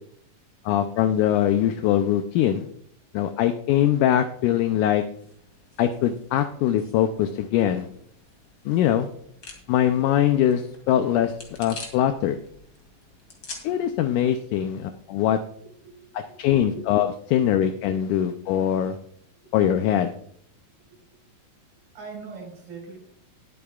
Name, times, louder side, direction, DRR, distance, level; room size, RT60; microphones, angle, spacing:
voice 1, 0.6-2.7 3.1-5.0 5.8-7.9 8.6-9.1 9.7-11.3 11.6-12.4 13.6-15.4 16.1-19.0 19.5-20.1, left 11 dB, 80° left, 7 dB, 1.8 m, -22 dB
sound 1, 5.0-14.2, left 3 dB, 35° left, 2.7 m, -47 dB
voice 2, 15.6-16.9 17.3-17.4 19.4-19.5 21.9-23.0, right 4 dB, 75° right, -1 dB, 6.3 m, -41 dB
20.5 x 8.6 x 2.4 m, 0.65 s
omnidirectional pair, 4.1 m